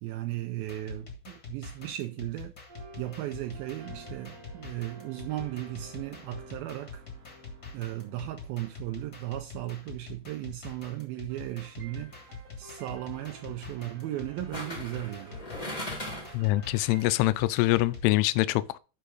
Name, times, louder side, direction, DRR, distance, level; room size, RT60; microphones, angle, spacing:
voice 1, 0.0-2.5 3.0-7.0 7.7-15.4, right 15 dB, 85° right, 2.1 m, -36 dB
sound 1, 0.6-18.2, left 4 dB, 35° left, 1.7 m, -45 dB
sound 2, 2.7-10.4 11.3-17.3, right 2 dB, 35° right, 4.8 m, -52 dB
sound 3, 11.9-12.2 14.5-16.5 16.8-16.9, left 1 dB, 15° left, 1.3 m, -38 dB
voice 2, 16.3-18.8, left 18 dB, 85° left, 2.6 m, -24 dB
11.5 x 4.7 x 3.9 m
omnidirectional pair, 4.8 m